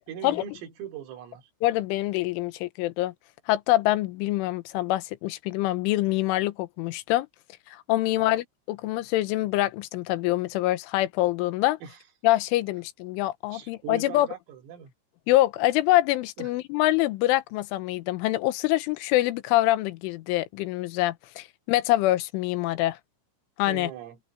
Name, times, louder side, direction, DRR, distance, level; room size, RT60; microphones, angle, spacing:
voice 1, 0.1-1.5 8.2-8.4 11.8-12.0 13.5-14.9 16.4-16.5 23.7-24.2, right 8 dB, 85° right, 5.3 m, -40 dB
voice 2, 1.6-3.1 3.5-7.3 7.7-11.8 12.2-14.3 15.3-23.0 23.6-23.9, left 16 dB, 80° left, 3.4 m, -25 dB
open air
omnidirectional pair, 5.8 m